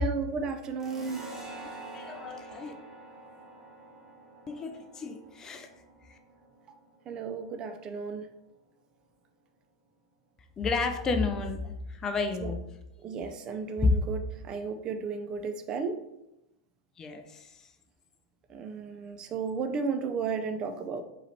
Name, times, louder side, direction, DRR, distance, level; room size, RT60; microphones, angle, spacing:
voice 1, 0.0-1.3 7.1-8.3 12.4-12.5 13.0-14.2 14.4-16.0 18.5-21.0, right 5 dB, 35° right, 7 dB, 0.5 m, -33 dB
sound 1, 0.8-8.0, right 2 dB, 15° right, 1.2 m, -47 dB
voice 2, 1.9-2.7 4.5-5.7 6.1-6.2 10.6-12.6 13.8-14.0 17.0-17.6, left 4 dB, 25° left, 6 dB, 0.5 m, -31 dB
4.8 x 3.1 x 2.8 m, 0.88 s
hypercardioid pair, 100°, 2 cm